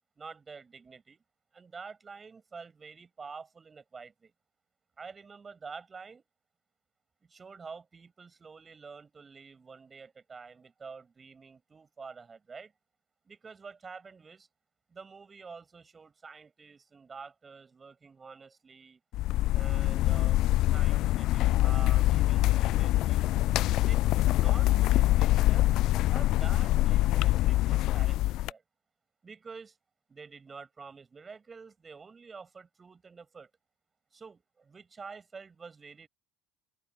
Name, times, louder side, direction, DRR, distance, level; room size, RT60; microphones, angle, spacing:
voice 1, 0.2-1.2 1.5-4.3 5.0-6.2 7.3-12.7 13.2-14.5 14.9-19.0 19.5-20.4 20.7-23.4 23.8-25.7 26.1-28.6 29.2-29.8 30.1-33.5 34.1-36.1, right 5 dB, 30° right, 7.3 m, -48 dB
sound 1, 19.1-28.5, left 16 dB, 60° left, 0.3 m, -24 dB
open air
hypercardioid pair, 65°, 0 cm